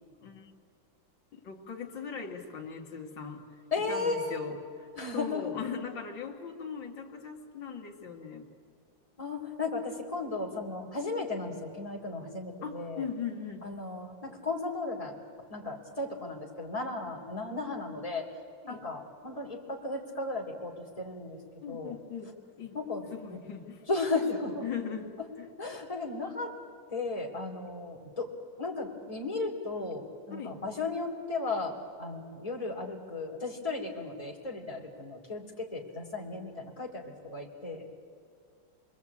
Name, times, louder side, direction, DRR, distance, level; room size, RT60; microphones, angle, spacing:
voice 1, 1.3-3.5 3.8-8.5 12.6-13.7 18.6-18.9 21.6-22.8 23.1-23.9 24.6-25.5 30.3-30.6, left 6 dB, 75° left, 0 dB, 2.6 m, -40 dB
voice 2, 3.7-4.5 4.9-5.4 9.2-13.0 13.6-15.2 15.5-18.3 18.7-21.4 21.7-21.9 22.7-23.0 23.3-23.4 23.9-24.6 25.6-26.5 26.9-28.3 28.6-37.8, left 3 dB, 15° left, -1 dB, 3.1 m, -35 dB
28.0 x 21.5 x 8.5 m, 2.2 s
omnidirectional pair, 2.1 m